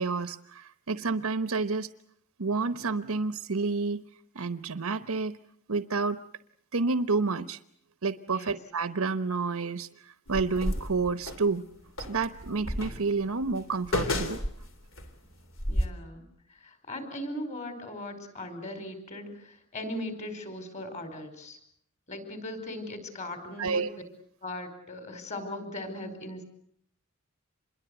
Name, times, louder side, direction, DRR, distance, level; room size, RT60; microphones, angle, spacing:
voice 1, 0.0-1.9 2.4-4.0 4.3-5.4 5.7-6.2 6.7-7.6 8.0-9.9 10.3-11.6 12.1-14.4 23.6-23.9, right 4 dB, 80° right, 12 dB, 1.0 m, -29 dB
sound 1, 10.3-11.5 12.0-15.1 15.5-15.9, left 1 dB, 60° left, 3.4 m, -31 dB
voice 2, 15.7-16.2 16.5-21.6 22.1-23.8 24.4-26.4, left 1 dB, 30° left, 8 dB, 5.0 m, -39 dB
27.0 x 22.0 x 8.0 m, 0.65 s
head